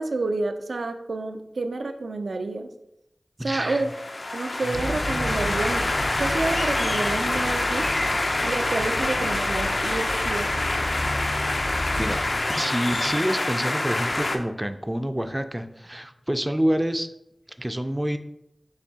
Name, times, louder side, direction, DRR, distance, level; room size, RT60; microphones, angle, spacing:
voice 1, 0.0-2.7 3.4-3.9 4.3-5.8 6.2-7.9 8.4-10.6, right 3 dB, 90° right, 6 dB, 0.4 m, -29 dB
voice 2, 3.4-3.9 4.7-4.8 12.0-12.2 12.6-17.1 17.6-18.2, equal, 15° right, 8 dB, 0.3 m, -27 dB
sound 1, 3.7-14.4, left 2 dB, 65° left, 0.5 m, -26 dB
sound 2, 4.7-12.4, left 1 dB, 80° left, 1.2 m, -33 dB
sound 3, 9.5-10.3 10.8-15.4, left 1 dB, 45° left, 0.9 m, -44 dB
6.6 x 2.7 x 2.8 m, 0.83 s
wide cardioid pair, 50°, 0 cm